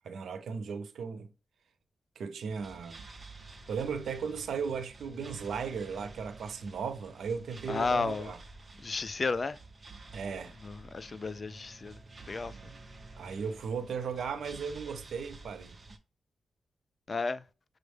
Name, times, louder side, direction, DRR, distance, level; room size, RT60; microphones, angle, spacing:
voice 1, 0.0-1.3 2.2-3.0 3.7-8.4 10.1-10.5 12.5-12.6 13.2-15.8, right 6 dB, 85° right, 0.5 m, -36 dB
sound 1, 2.5-16.0, right 3 dB, 35° right, 0.6 m, -50 dB
voice 2, 7.7-8.3 8.8-9.6 10.6-12.6 17.1-17.4, left 4 dB, 40° left, 0.3 m, -33 dB
6.1 x 2.1 x 3.2 m
cardioid pair, 85°, 0 cm